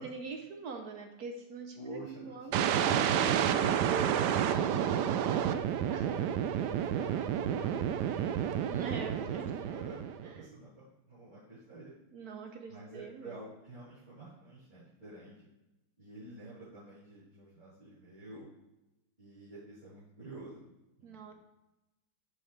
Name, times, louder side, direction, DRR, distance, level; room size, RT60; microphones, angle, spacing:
voice 1, 0.0-4.5 5.9-6.1 8.6-9.7 10.2-10.5 12.1-13.4 21.0-21.3, right 4 dB, 60° right, 4 dB, 1.0 m, -43 dB
voice 2, 1.8-2.6 5.0-6.3 6.5-9.4 9.7-10.0 10.2-11.9 12.7-15.3 16.0-18.5 19.2-20.6 21.0-21.3, right 2 dB, 20° right, -15 dB, 3.4 m, -48 dB
sound 1, 2.5-10.4, right 9 dB, 90° right, 0.9 m, -30 dB
10.5 x 6.3 x 3.2 m, 0.96 s
omnidirectional pair, 2.3 m